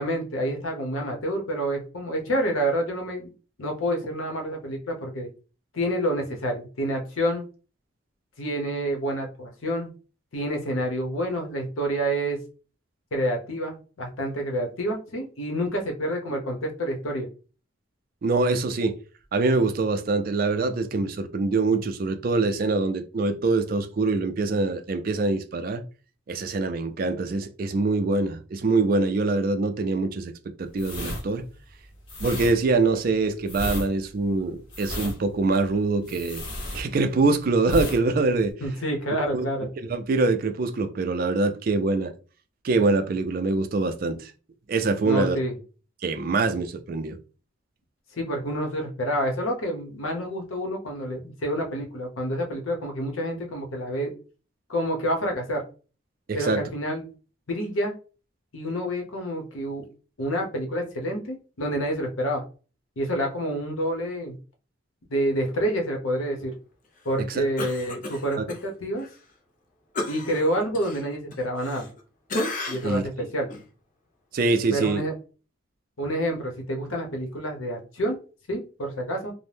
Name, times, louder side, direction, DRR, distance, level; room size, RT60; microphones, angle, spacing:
voice 1, 0.0-3.3 3.6-5.3 5.7-7.4 8.4-9.9 10.3-12.4 13.1-17.3 38.6-39.7 45.0-45.5 48.1-54.1 54.7-55.6 56.3-57.1 57.5-57.9 58.5-59.8 60.2-62.4 63.0-64.4 65.1-66.5 67.0-69.1 70.1-71.9 72.7-73.5 74.7-75.1 76.0-78.2 78.5-79.3, equal, 90° left, 0.8 m, -28 dB
voice 2, 18.2-19.0 19.3-25.8 26.3-30.3 30.6-31.4 32.2-36.4 36.7-38.5 39.3-39.5 39.8-42.1 42.6-44.3 44.7-45.4 46.0-47.2 56.3-56.6 67.3-67.4 68.4-68.5 72.8-73.0 74.3-75.0, right 3 dB, 45° right, 0.4 m, -24 dB
sound 1, 30.7-37.3 37.6-38.0 38.3-38.5, left 1 dB, 60° left, 1.0 m, -33 dB
Cough, 67.6-68.6 69.0-69.1 70.0-72.0 72.3-73.0 73.5-73.6, left 2 dB, 40° left, 0.5 m, -33 dB
2.6 x 2.1 x 3.3 m
head